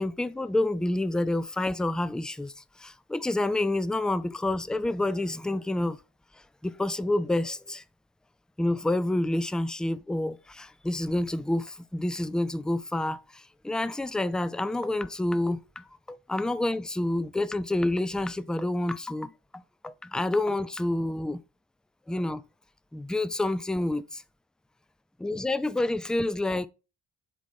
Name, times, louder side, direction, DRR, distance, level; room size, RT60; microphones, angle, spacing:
voice 1, 0.0-6.0 6.6-7.8 8.6-21.4 22.1-22.4 22.9-24.2 25.2-26.7, left 1 dB, ahead, 0.3 m, -28 dB
7.4 x 3.9 x 3.6 m
cardioid pair, 55°, 47 cm